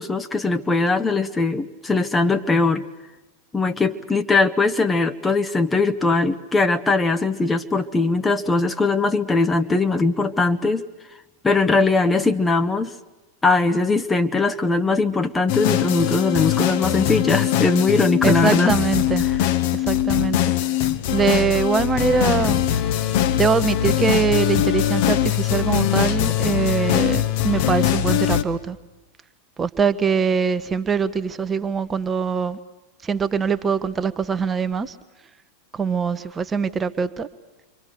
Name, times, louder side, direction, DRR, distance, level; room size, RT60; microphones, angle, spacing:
voice 1, 0.0-2.8 3.5-10.8 11.4-12.9 13.4-18.8 19.2-19.4, left 3 dB, 10° left, 0.8 m, -20 dB
sound 1, 15.5-28.4, left 11 dB, 50° left, 1.1 m, -21 dB
voice 2, 18.2-19.3 19.9-20.4 21.1-22.6 23.4-28.8 29.6-32.6 33.0-34.9 35.7-37.3, right 6 dB, 20° right, 0.9 m, -22 dB
28.0 x 24.0 x 6.7 m
figure-of-eight pair, 90°, 0 cm